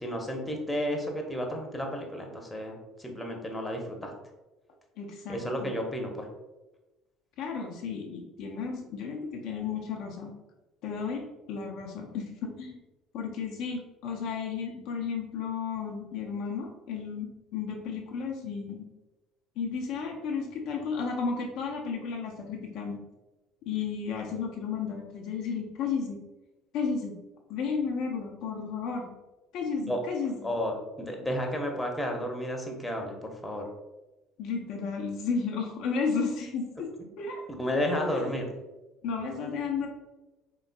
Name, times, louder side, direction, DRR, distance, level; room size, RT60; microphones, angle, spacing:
voice 1, 0.0-4.1 5.3-6.3 29.9-30.0 30.4-33.7 37.6-38.5, equal, 10° left, 2 dB, 0.8 m, -32 dB
voice 2, 5.0-5.7 7.4-10.3 10.8-12.8 13.1-18.9 19.6-23.0 23.6-26.2 26.7-27.2 27.5-29.1 29.5-30.5 34.4-36.9 37.2-38.3 39.0-39.9, left 5 dB, 60° left, 1 dB, 0.5 m, -33 dB
3.8 x 3.7 x 2.2 m, 1.1 s
figure-of-eight pair, 60°, 0 cm